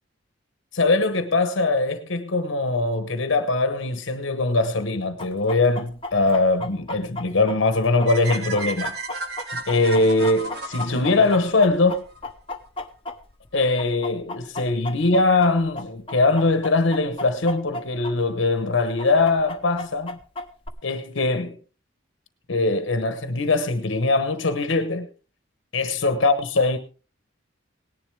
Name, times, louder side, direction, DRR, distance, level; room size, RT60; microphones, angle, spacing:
voice 1, 0.7-8.9 9.5-12.0 13.5-20.2 20.8-21.6 22.5-25.1 25.7-26.8, left 3 dB, 75° left, 1.0 m, -21 dB
Chicken rooster, 5.2-13.5 13.8-18.1 18.4-18.5 19.0-20.7, left 2 dB, 25° left, 1.0 m, -34 dB
sound 1, 8.1-12.2, right 3 dB, 55° right, 1.6 m, -34 dB
18.5 x 10.5 x 3.4 m
head